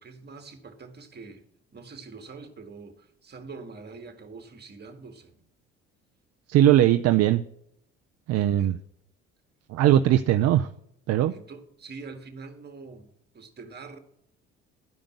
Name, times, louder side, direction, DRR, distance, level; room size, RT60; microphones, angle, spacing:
voice 1, 0.0-1.4 1.7-5.4 8.3-8.8 11.3-14.0, right 4 dB, 35° right, 2.0 m, -44 dB
voice 2, 6.5-7.4 8.3-8.8 9.7-10.7 11.1-11.3, right 12 dB, 60° right, 0.6 m, -20 dB
12.0 x 5.1 x 7.9 m
hypercardioid pair, 65°, 29 cm